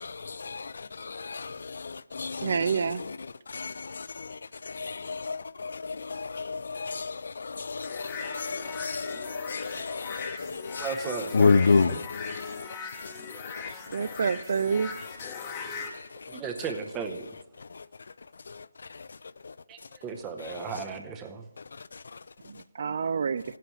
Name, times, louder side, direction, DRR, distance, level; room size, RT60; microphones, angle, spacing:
voice 1, 0.0-14.3 14.8-15.3 15.9-16.4 17.6-17.9 18.5-19.2 19.4-19.5 20.4-20.7 21.6-22.2 22.5-22.6, left 4 dB, 65° left, 0.3 m, -31 dB
voice 2, 2.4-3.0 13.9-14.9 22.5-23.4, right 6 dB, 50° right, 0.3 m, -28 dB
sound 1, 7.8-15.9, left 5 dB, 20° left, 0.9 m, -40 dB
voice 3, 10.8-12.0 16.3-17.3 19.7-21.5, right 6 dB, 15° right, 0.7 m, -36 dB
16.0 x 9.0 x 3.1 m
hypercardioid pair, 165°, 0 cm